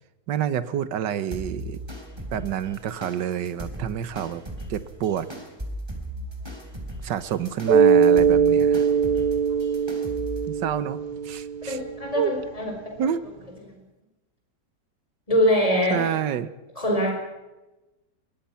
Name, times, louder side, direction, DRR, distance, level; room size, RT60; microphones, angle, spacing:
voice 1, 0.3-1.8 2.3-4.4 4.7-5.3 7.0-8.9 10.5-11.8 12.1-12.3 13.0-13.2 15.9-16.5, right 9 dB, 80° right, 14 dB, 1.7 m, -28 dB
sound 1, 1.3-10.5, right 1 dB, 15° right, 3.5 m, -38 dB
Mallet percussion, 7.7-12.1, right 6 dB, 45° right, 0.6 m, -21 dB
voice 2, 11.7-12.7 15.3-16.1 16.8-17.2, equal, 20° left, 1 dB, 4.8 m, -23 dB
22.0 x 21.5 x 5.8 m, 1.0 s
omnidirectional pair, 1.9 m